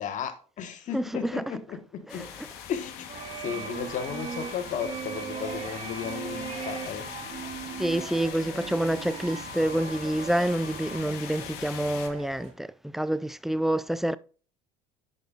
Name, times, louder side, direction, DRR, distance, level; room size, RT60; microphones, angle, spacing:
voice 1, 0.0-2.3 2.7-3.0 3.4-7.1, left 8 dB, 50° left, 1.3 m, -34 dB
sound 1, 2.1-12.1, left 8 dB, 75° left, 1.3 m, -42 dB
sound 2, 3.1-12.5, right 6 dB, 40° right, 2.1 m, -39 dB
voice 2, 7.8-12.7 12.9-14.2, right 1 dB, ahead, 0.3 m, -27 dB
10.5 x 5.2 x 2.5 m
supercardioid pair, 90°, 16 cm